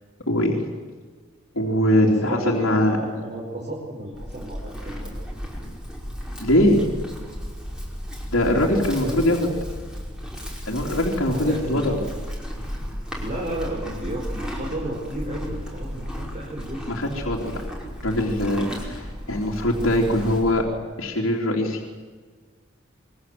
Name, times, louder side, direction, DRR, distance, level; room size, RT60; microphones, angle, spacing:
voice 1, 0.3-0.6 1.5-3.0 6.4-6.8 8.3-9.4 10.7-12.0 16.9-17.6 18.0-20.6 21.0-21.8, left 1 dB, 75° left, -3 dB, 3.6 m, -22 dB
voice 2, 2.0-5.0 8.5-9.3 11.2-11.9 13.2-16.9, right 1 dB, 35° right, -3 dB, 5.2 m, -33 dB
Livestock farm animals working animals, 4.1-20.7, equal, 5° right, 5.3 m, -34 dB
27.0 x 23.5 x 7.9 m, 1.4 s
head